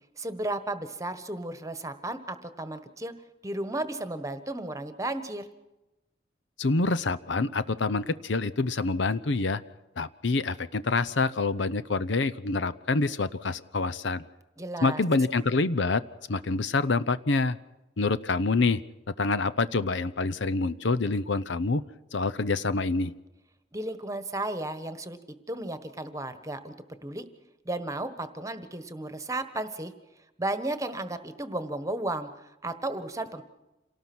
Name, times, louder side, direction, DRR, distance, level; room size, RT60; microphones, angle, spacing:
voice 1, 0.2-3.1 3.4-5.5 14.6-15.0 23.7-25.2 25.5-26.7 27.0-27.3 27.6-29.9 30.4-33.4, right 2 dB, 15° right, 10 dB, 1.3 m, -34 dB
voice 2, 6.6-9.6 10.0-14.2 14.8-16.0 16.3-17.6 18.0-18.8 19.2-21.8 22.1-23.1, left 3 dB, 70° left, 15 dB, 0.8 m, -26 dB
27.5 x 18.5 x 6.1 m, 1.0 s
head